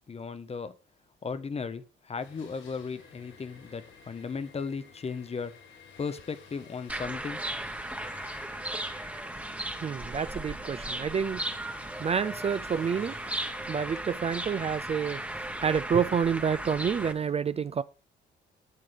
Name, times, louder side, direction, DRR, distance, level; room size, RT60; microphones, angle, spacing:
voice 1, 0.1-0.7 1.2-5.5 6.0-7.4, left 5 dB, 30° left, 0.8 m, -36 dB
sound 1, 2.2-17.3, left 5 dB, 90° left, 5.5 m, -53 dB
sound 2, 6.9-17.1, right 1 dB, 5° right, 1.0 m, -36 dB
voice 2, 9.8-11.5 12.0-13.2 13.7-15.2 15.6-17.8, right 7 dB, 30° right, 0.4 m, -28 dB
11.0 x 7.5 x 3.4 m
cardioid pair, 90°, 20 cm